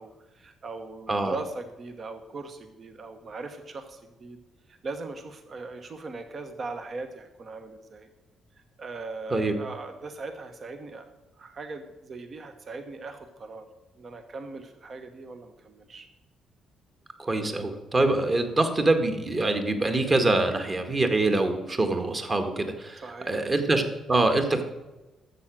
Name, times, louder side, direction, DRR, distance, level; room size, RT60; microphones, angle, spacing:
voice 1, 0.0-4.4 4.7-8.1 8.5-11.1 11.3-13.7 14.0-16.1 23.0-23.5, right 3 dB, 45° right, 8 dB, 1.2 m, -39 dB
voice 2, 17.2-24.6, right 2 dB, 30° right, 6 dB, 1.8 m, -25 dB
12.5 x 7.7 x 6.2 m, 1.1 s
cardioid pair, 90°, 0 cm